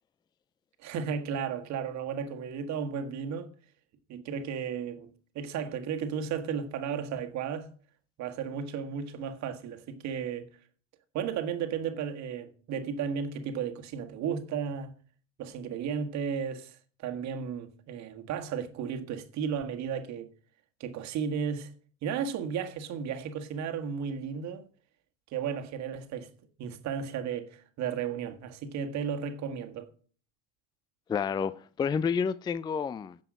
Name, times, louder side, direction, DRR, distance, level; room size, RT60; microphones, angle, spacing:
voice 1, 0.8-3.5 4.1-5.1 5.4-7.7 8.2-10.5 11.1-14.9 15.4-20.3 20.8-21.7 22.0-24.7 25.3-26.3 26.6-29.9, right 7 dB, 50° right, 1.6 m, -34 dB
voice 2, 31.1-33.2, left 6 dB, 10° left, 0.4 m, -29 dB
10.5 x 7.0 x 5.0 m
hypercardioid pair, 85°, 36 cm